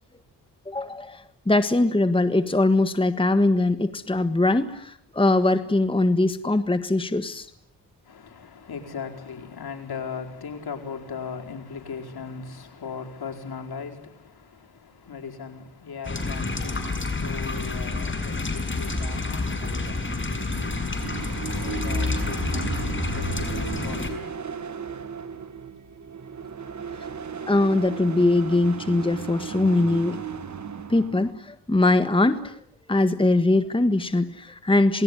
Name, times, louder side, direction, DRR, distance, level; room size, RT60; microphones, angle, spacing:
voice 1, 0.6-7.5 27.5-30.2 30.9-32.6 32.9-35.0, left 2 dB, 15° left, 1.4 m, -22 dB
voice 2, 8.1-21.0 21.6-22.9 23.1-24.3, left 5 dB, 65° left, 4.6 m, -38 dB
sound 1, 16.0-24.1, left 3 dB, 30° left, 6.1 m, -28 dB
sound 2, 20.2-31.3, right 6 dB, 45° right, 1.6 m, -36 dB
28.0 x 20.0 x 9.9 m
wide cardioid pair, 100°, 40 cm